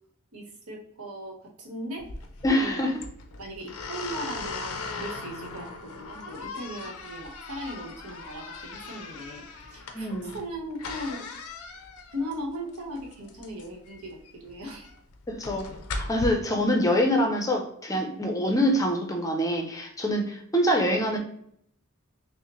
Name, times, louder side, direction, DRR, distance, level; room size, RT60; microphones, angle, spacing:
voice 1, 0.3-2.1 2.5-2.8 3.4-11.2 12.1-14.9, equal, 80° right, 0 dB, 1.1 m, -38 dB
sound 1, 2.0-16.3, left 4 dB, 75° left, 0.5 m, -39 dB
voice 2, 2.4-2.9 9.9-10.3 15.3-15.7 15.9-21.2, equal, 15° left, 3 dB, 0.5 m, -25 dB
5.7 x 2.1 x 2.9 m, 0.69 s
head